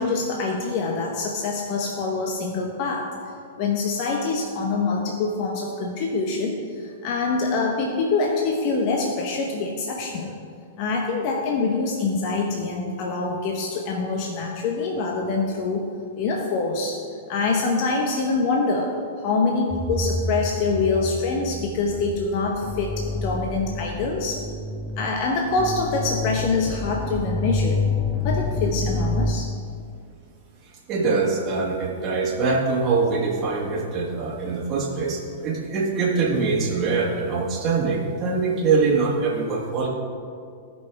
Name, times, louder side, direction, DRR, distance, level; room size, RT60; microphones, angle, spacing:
voice 1, 0.0-3.1 3.6-10.4 10.8-15.9 16.2-17.0 17.3-18.9 19.2-24.4 25.0-27.9 28.2-29.5, left 3 dB, 45° left, 0 dB, 0.9 m, -25 dB
Synth Wave, 19.7-29.3, left 2 dB, 10° left, 0.6 m, -28 dB
voice 2, 30.9-39.9, right 4 dB, 30° right, -5 dB, 1.7 m, -23 dB
16.0 x 5.6 x 3.5 m, 2.3 s
hypercardioid pair, 135°, 0 cm